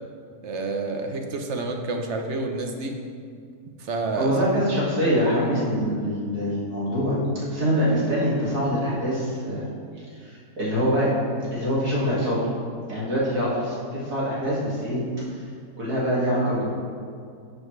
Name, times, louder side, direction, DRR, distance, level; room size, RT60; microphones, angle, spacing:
voice 1, 0.4-3.0 3.8-4.5, right 3 dB, 55° right, 3 dB, 1.0 m, -29 dB
voice 2, 4.2-7.2 7.5-9.7 10.2-11.1 11.5-12.4 12.9-15.0 15.8-16.7, equal, 85° right, -8 dB, 2.7 m, -24 dB
11.0 x 6.6 x 3.2 m, 2.3 s
omnidirectional pair, 1.6 m